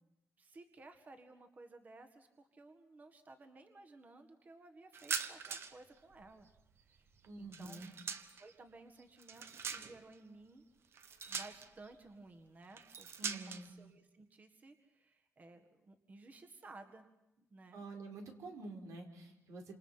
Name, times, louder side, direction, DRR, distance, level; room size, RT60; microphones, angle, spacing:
voice 1, 0.4-6.5 6.8-7.9 8.4-10.6 11.3-17.1 17.4-17.8, right 2 dB, 30° right, 6 dB, 1.8 m, -57 dB
sound 1, 4.9-5.8 6.1-8.5 9.0-10.1 10.9-11.9 12.7-13.7, right 6 dB, 50° right, 1.3 m, -43 dB
voice 2, 7.3-7.9 13.2-13.7 17.7-19.7, right 2 dB, 90° right, 3 dB, 4.5 m, -48 dB
28.5 x 27.5 x 5.8 m, 0.86 s
wide cardioid pair, 150°, 5 cm